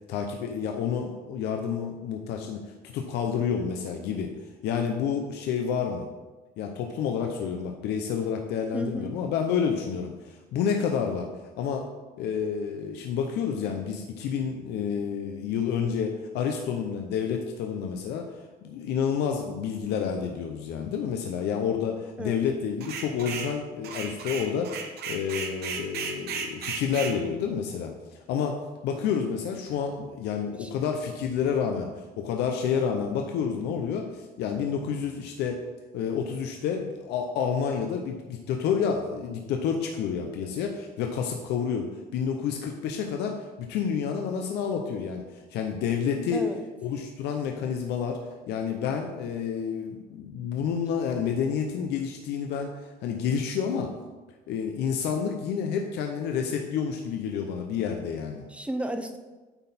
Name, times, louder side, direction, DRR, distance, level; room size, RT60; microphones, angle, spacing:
voice 1, 0.1-2.6 2.9-4.3 4.6-6.1 6.6-11.3 11.6-11.9 12.2-28.6 28.8-35.6 35.9-46.4 46.8-48.2 48.5-53.9 54.5-58.4, left 7 dB, 80° left, 3 dB, 0.7 m, -29 dB
voice 2, 8.7-9.1 22.2-22.4 30.6-30.7 46.3-46.7 58.5-59.2, right 1 dB, 5° right, 7 dB, 0.6 m, -33 dB
sound 1, 22.8-23.5 23.8-27.2, right 6 dB, 70° right, 1.0 m, -34 dB
9.0 x 4.1 x 4.2 m, 1.2 s
cardioid pair, 110°, 17 cm